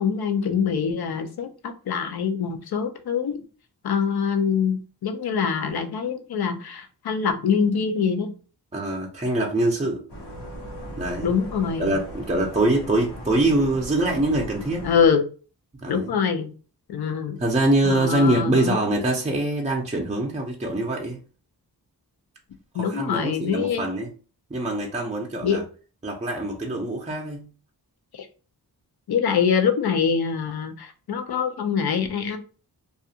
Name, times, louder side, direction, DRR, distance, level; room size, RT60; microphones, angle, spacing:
voice 1, 0.0-3.4 3.8-8.3 11.2-12.0 14.8-15.2 15.9-16.5 16.9-17.4 17.9-19.2 22.7-23.8 25.4-25.6 28.1-28.3 29.1-32.4, left 6 dB, 70° left, 0.6 m, -24 dB
voice 2, 8.7-10.0 11.0-11.3 11.8-14.8 15.8-16.1 17.4-21.2 22.7-24.1 24.5-25.6 26.0-27.4, right 1 dB, 15° right, 0.5 m, -24 dB
sound 1, 10.1-15.1, equal, 90° left, 1.0 m, -38 dB
2.4 x 2.4 x 2.7 m
cardioid pair, 60°, 40 cm